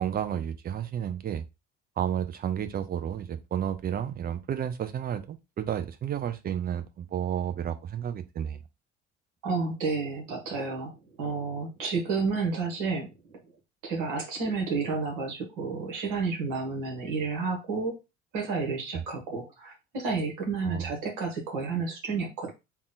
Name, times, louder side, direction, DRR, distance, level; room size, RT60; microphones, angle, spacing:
voice 1, 0.0-1.4 2.0-8.6 18.9-19.0 20.6-20.9, right 9 dB, 25° right, 0.5 m, -31 dB
voice 2, 9.4-10.9 11.2-13.4 13.8-18.0 18.3-22.5, right 4 dB, 60° right, 1.4 m, -31 dB
3.6 x 2.3 x 3.8 m
figure-of-eight pair, 55°, 37 cm